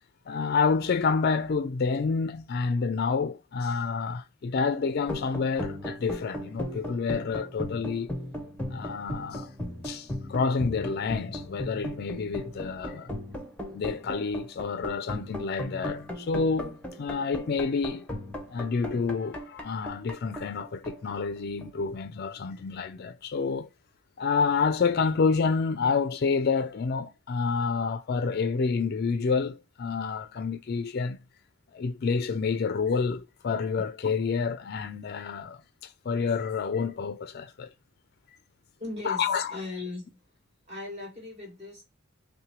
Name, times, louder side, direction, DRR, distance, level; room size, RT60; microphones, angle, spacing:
voice 1, 0.3-8.1 8.7-9.5 9.8-13.1 13.7-18.1 18.5-23.7 24.2-31.2 31.7-35.6 36.0-37.7 39.0-39.5, left 5 dB, 45° left, 0.4 m, -28 dB
sound 1, 5.1-21.9, left 1 dB, 5° left, 0.8 m, -37 dB
voice 2, 38.8-40.2 40.7-41.8, left 2 dB, 30° right, 2.0 m, -38 dB
5.6 x 2.2 x 3.0 m
head